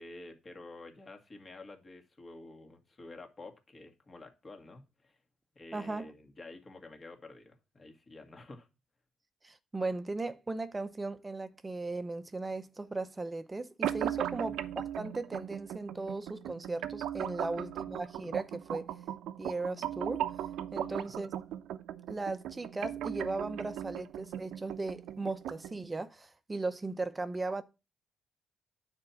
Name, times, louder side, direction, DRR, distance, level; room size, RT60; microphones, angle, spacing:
voice 1, 0.0-5.2 5.5-8.7 14.3-14.6 20.9-21.1, left 2 dB, 30° left, 2.0 m, -50 dB
voice 2, 5.7-6.0 9.4-18.9 19.4-20.3 20.7-21.3 22.1-27.6, right 3 dB, 20° right, 0.7 m, -37 dB
sound 1, 13.8-25.8, right 11 dB, 85° right, 0.7 m, -38 dB
9.5 x 4.5 x 7.1 m
cardioid pair, 90°, 0 cm